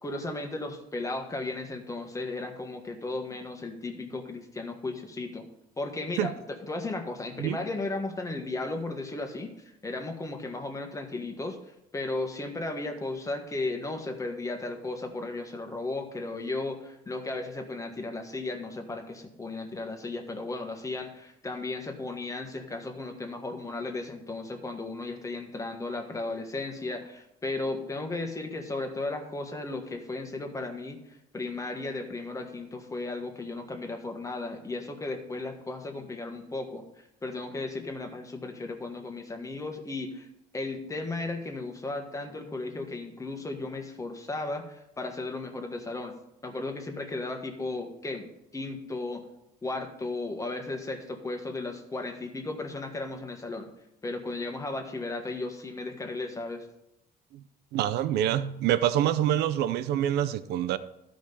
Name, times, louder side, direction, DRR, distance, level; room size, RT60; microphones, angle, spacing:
voice 1, 0.0-5.4 5.8-6.3 6.6-11.6 11.9-36.8 37.2-40.3 40.5-46.1 46.4-48.3 48.5-49.2 49.6-53.7 54.0-56.7, left 2 dB, 20° left, 1.4 m, -35 dB
voice 2, 57.7-60.8, right 11 dB, 80° right, 0.5 m, -26 dB
12.5 x 5.1 x 5.4 m
cardioid pair, 110°, 17 cm